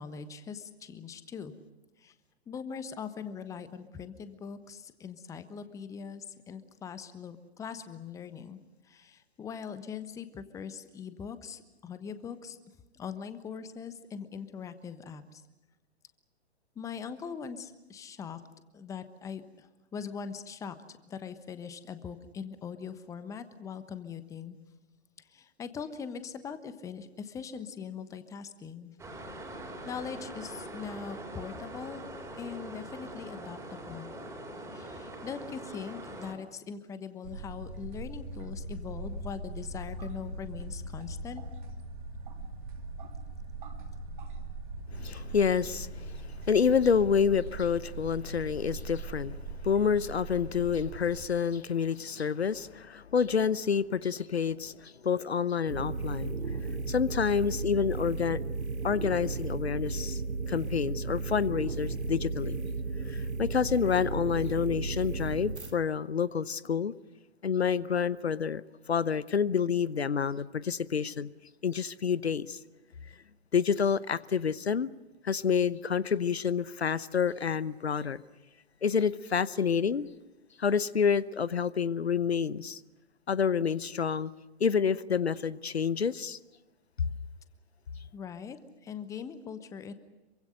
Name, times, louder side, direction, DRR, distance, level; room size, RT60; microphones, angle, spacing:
voice 1, 0.0-1.5 2.0-2.1 2.5-8.6 8.9-12.6 12.9-15.4 16.8-18.4 18.7-19.7 19.9-24.6 25.3-28.9 29.8-32.0 32.4-34.1 34.7-41.4 88.1-88.6 88.8-89.9, left 6 dB, 10° left, 1.1 m, -41 dB
sound 1, 29.0-36.4, right 1 dB, 10° right, 4.0 m, -43 dB
sound 2, 37.2-51.2, right 2 dB, 45° right, 3.2 m, -41 dB
voice 2, 45.0-49.3 49.6-56.3 56.9-58.4 58.8-60.2 60.5-62.6 63.1-66.9 67.4-68.6 68.9-71.3 71.6-72.6 73.5-74.9 75.2-78.2 78.8-80.1 80.6-82.8 83.3-84.3 84.6-86.4, left 6 dB, 65° left, 0.9 m, -28 dB
sound 3, 55.7-65.7, right 3 dB, 75° right, 2.7 m, -34 dB
26.5 x 24.0 x 6.6 m
figure-of-eight pair, 120°, 34 cm